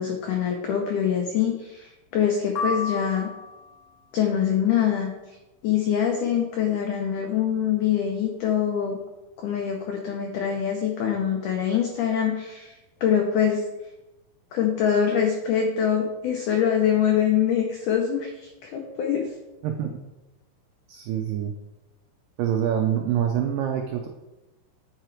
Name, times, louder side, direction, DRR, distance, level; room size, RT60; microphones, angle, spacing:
voice 1, 0.0-3.3 4.1-5.1 5.6-9.0 9.4-12.7 13.0-13.6 14.5-19.3, left 8 dB, 90° left, 2 dB, 1.8 m, -24 dB
sound 1, 2.6-3.8, left 3 dB, 70° left, 2.1 m, -31 dB
voice 2, 19.6-20.0 20.9-21.5 22.4-24.1, right 9 dB, 85° right, 3 dB, 1.9 m, -25 dB
8.9 x 4.8 x 4.5 m, 1.0 s
omnidirectional pair, 4.6 m